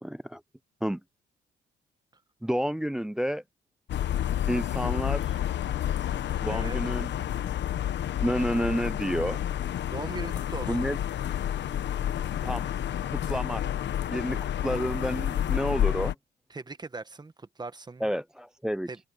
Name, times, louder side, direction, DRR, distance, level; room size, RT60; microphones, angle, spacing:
voice 1, 0.0-0.4 0.8-1.0 2.4-3.4 4.5-5.4 6.4-7.5 8.2-9.4 10.7-11.0 12.4-12.7 13.1-13.6 14.1-16.1 18.0-18.9, equal, 5° right, 0.3 m, -30 dB
sound 1, 3.9-16.1, left 11 dB, 65° left, 1.1 m, -30 dB
voice 2, 6.5-6.8 9.9-10.9 14.3-14.4 16.5-18.1 18.9-19.0, right 3 dB, 20° right, 1.2 m, -39 dB
cardioid pair, 90°, 20 cm